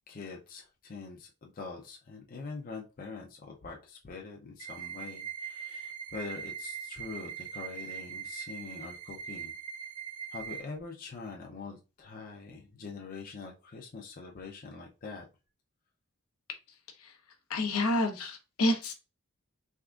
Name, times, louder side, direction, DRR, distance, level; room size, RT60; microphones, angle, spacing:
voice 1, 0.1-9.5 10.3-15.3, left 4 dB, 40° left, 0 dB, 0.5 m, -44 dB
sound 1, 4.6-10.6, right 8 dB, 75° right, 0.6 m, -41 dB
voice 2, 17.5-18.9, left 1 dB, 75° left, 5 dB, 0.8 m, -29 dB
3.6 x 3.4 x 2.4 m, 0.30 s
head